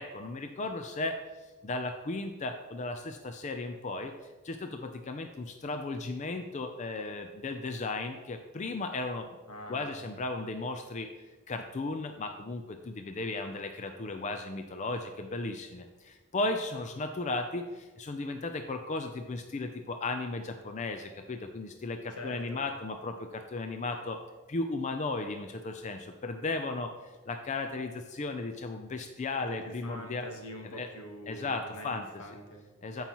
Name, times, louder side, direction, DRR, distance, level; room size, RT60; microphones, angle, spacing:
voice 1, 0.0-4.1 4.4-9.4 9.7-11.1 11.5-24.2 24.5-30.3 30.7-30.9 31.3-32.2 32.8-33.0, left 3 dB, 30° left, 6 dB, 0.4 m, -35 dB
voice 2, 9.5-10.1 22.1-22.6 29.5-32.7, left 1 dB, 80° left, 2 dB, 1.4 m, -44 dB
14.0 x 5.6 x 3.0 m, 1.3 s
head